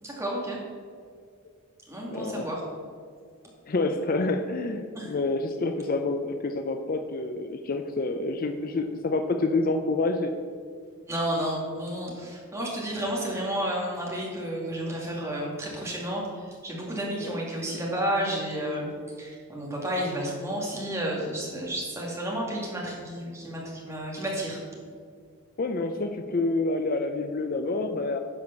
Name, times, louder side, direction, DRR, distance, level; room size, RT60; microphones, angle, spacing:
voice 1, 0.0-0.6 1.9-2.6 4.9-5.1 11.1-24.6, right 1 dB, 10° right, -3 dB, 2.1 m, -31 dB
voice 2, 2.1-2.5 3.7-10.3 17.2-17.4 25.6-28.2, left 2 dB, 40° left, 7 dB, 0.5 m, -28 dB
10.5 x 4.9 x 6.8 m, 2.1 s
head